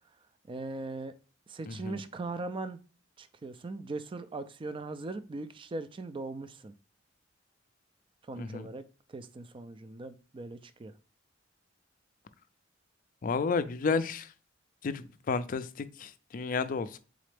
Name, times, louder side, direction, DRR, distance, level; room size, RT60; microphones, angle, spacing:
voice 1, 0.5-1.1 1.5-2.8 3.2-6.7 8.3-8.8 9.1-10.9, right 3 dB, 25° right, 0.3 m, -39 dB
voice 2, 1.7-2.0 8.4-8.7 13.2-14.3 14.8-17.0, left 4 dB, 45° left, 0.4 m, -32 dB
4.1 x 3.8 x 3.3 m
head